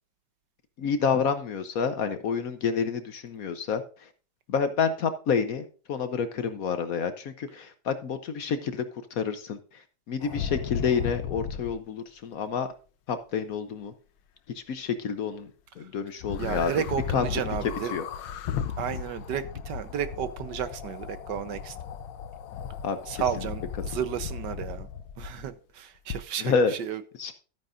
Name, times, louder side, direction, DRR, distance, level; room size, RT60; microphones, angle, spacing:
voice 1, 0.8-3.8 4.5-8.8 9.2-9.6 10.1-12.7 13.1-13.9 14.5-15.5 15.8-16.8 17.1-17.2 17.9-18.0 22.8-23.2 26.4-26.7 27.2-27.3, left 6 dB, 60° left, 1.0 m, -28 dB
sound 1, 10.2-11.8 16.2-25.5 26.1-26.2, left 8 dB, 80° left, 1.4 m, -35 dB
voice 2, 16.4-17.9 18.8-21.8 23.1-24.9 25.2-27.0, right 9 dB, 70° right, 1.4 m, -32 dB
12.5 x 9.3 x 2.5 m
omnidirectional pair, 2.0 m